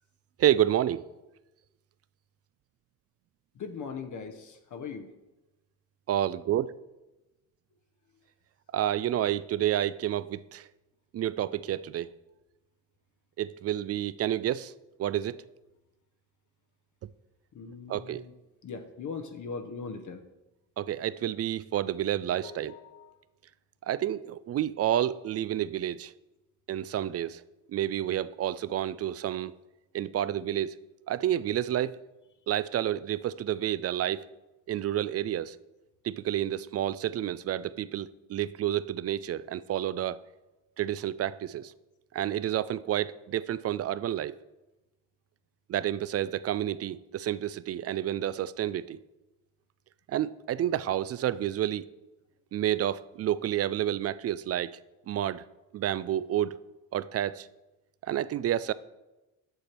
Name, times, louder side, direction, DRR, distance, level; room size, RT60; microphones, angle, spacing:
voice 1, 0.4-1.0 6.1-6.7 8.7-10.7 11.1-12.1 13.4-14.7 15.0-15.4 17.9-18.2 20.8-22.7 23.9-26.1 26.7-27.4 27.7-29.5 29.9-30.8 31.1-32.0 32.5-34.3 34.7-35.6 36.0-40.2 40.8-41.7 42.1-44.3 45.7-49.0 50.1-51.9 52.5-54.8 55.1-55.4 55.7-56.6 56.9-57.5 58.0-58.7, right 11 dB, 40° right, 0.4 m, -29 dB
voice 2, 3.6-5.1 17.5-18.3 18.6-20.2 22.4-23.1, left 5 dB, 50° left, 0.9 m, -40 dB
8.0 x 6.6 x 4.4 m
hypercardioid pair, 55°, 40 cm